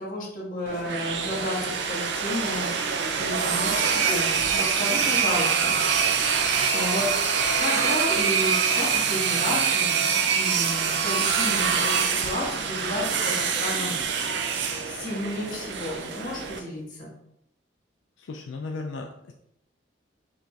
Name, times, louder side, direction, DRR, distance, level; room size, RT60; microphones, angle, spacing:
voice 1, 0.0-5.8 6.7-10.0 10.3-14.5 14.8-17.1, left 1 dB, 45° left, -6 dB, 1.5 m, -32 dB
sound 1, 0.7-16.6, right 6 dB, 75° right, 0.5 m, -25 dB
voice 2, 18.2-19.3, left 3 dB, 85° left, 3 dB, 0.4 m, -35 dB
5.5 x 2.5 x 3.3 m, 0.78 s
head